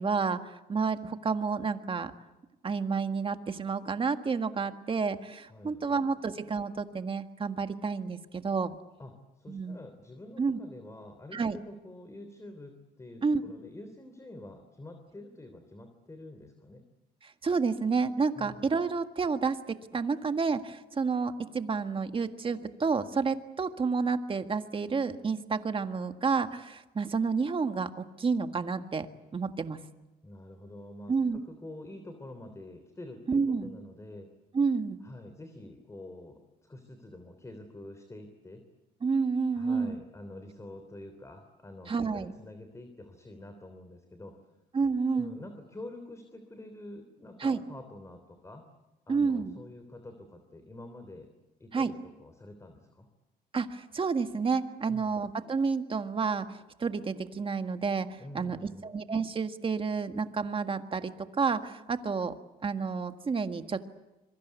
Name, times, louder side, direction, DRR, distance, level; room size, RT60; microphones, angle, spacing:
voice 1, 0.0-2.1 2.6-8.8 9.5-9.8 10.4-10.6 11.3-11.6 13.2-13.4 17.2-19.6 19.9-29.1 29.3-29.8 31.1-31.4 33.3-33.7 34.5-35.0 39.0-40.0 41.9-42.3 44.7-45.4 47.4-47.6 49.1-49.5 51.7-51.9 53.5-58.6 58.8-61.1 61.4-62.3 62.6-63.9, right 5 dB, 30° right, 8 dB, 1.8 m, -30 dB
voice 2, 5.5-6.0 9.0-16.8 18.4-18.7 30.2-34.3 35.0-38.6 39.6-44.4 45.1-48.7 49.1-51.3 51.6-53.1 54.9-55.2 58.2-58.9, left 1 dB, 15° left, 7 dB, 3.3 m, -47 dB
26.0 x 23.0 x 8.3 m, 1.0 s
cardioid pair, 100°, 17 cm